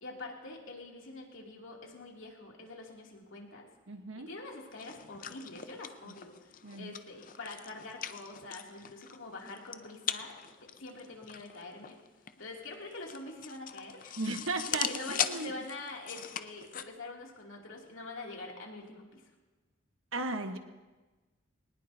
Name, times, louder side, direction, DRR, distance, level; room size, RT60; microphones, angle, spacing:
voice 1, 0.0-3.7 4.2-12.0 12.4-19.3, left 2 dB, 80° left, -1 dB, 2.8 m, -45 dB
voice 2, 3.9-4.3 6.6-6.9 14.2-15.5 20.1-20.6, right 2 dB, 90° right, 6 dB, 1.3 m, -36 dB
sound 1, 4.7-16.8, left 9 dB, 40° left, 0.5 m, -40 dB
22.5 x 19.5 x 2.8 m, 1.2 s
head